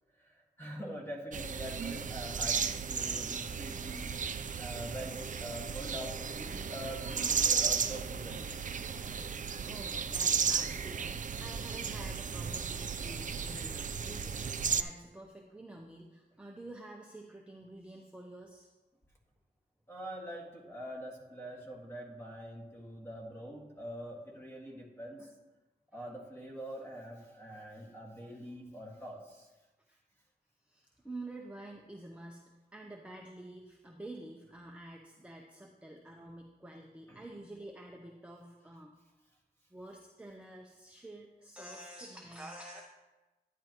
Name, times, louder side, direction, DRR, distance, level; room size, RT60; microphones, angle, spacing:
voice 1, 0.2-8.8 19.9-25.3 25.9-29.5 37.1-37.2, equal, 15° left, -1 dB, 1.8 m, -44 dB
sound 1, 1.3-14.8, right 6 dB, 50° right, 0.4 m, -34 dB
voice 2, 9.6-18.7 29.9-30.0 30.6-32.4 32.7-38.9 39.7-42.8, right 1 dB, 5° right, 0 dB, 0.7 m, -48 dB
11.0 x 10.0 x 3.0 m, 1.1 s
wide cardioid pair, 125°, 17 cm